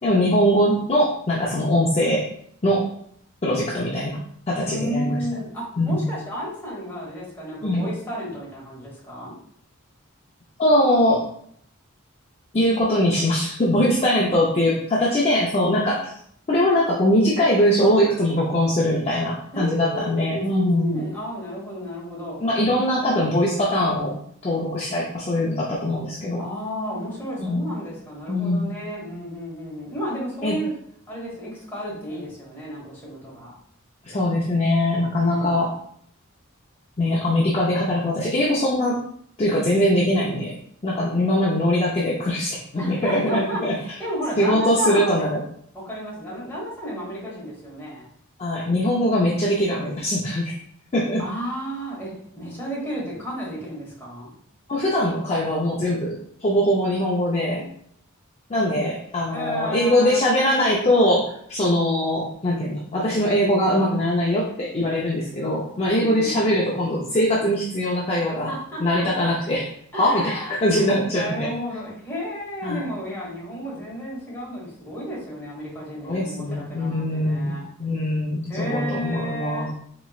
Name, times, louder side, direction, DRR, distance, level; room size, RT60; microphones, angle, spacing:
voice 1, 0.0-2.3 2.6-2.8 3.4-4.2 4.5-5.2 5.8-6.0 7.6-7.8 10.6-11.3 12.5-16.1 16.5-21.0 22.4-26.5 27.4-27.6 28.3-28.8 30.4-30.6 34.0-35.7 37.0-39.0 39.4-40.6 40.8-43.7 44.4-45.4 48.4-50.5 50.9-51.2 54.7-57.7 58.5-68.5 68.8-69.7 69.9-71.5 72.6-72.8 76.0-79.7, left 1 dB, 30° left, -5 dB, 0.5 m, -22 dB
voice 2, 4.6-9.4 19.5-22.4 26.4-30.7 31.1-33.5 35.1-35.6 42.8-45.3 45.7-48.1 51.2-54.3 59.3-60.2 65.8-66.5 68.2-69.0 69.9-77.7 78.5-79.7, equal, 10° left, -6 dB, 1.4 m, -32 dB
4.3 x 3.0 x 2.4 m, 0.66 s
head